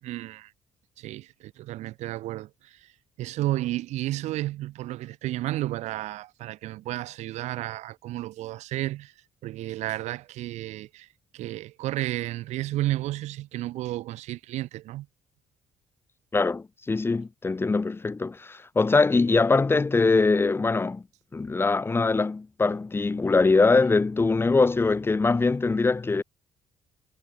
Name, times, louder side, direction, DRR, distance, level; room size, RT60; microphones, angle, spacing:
voice 1, 0.0-0.5 1.0-2.9 3.2-9.1 9.4-15.1, right 16 dB, 85° right, 6.9 m, -32 dB
voice 2, 16.3-21.0 21.3-26.2, left 3 dB, 20° left, 1.2 m, -22 dB
cardioid pair, 105°, 11 cm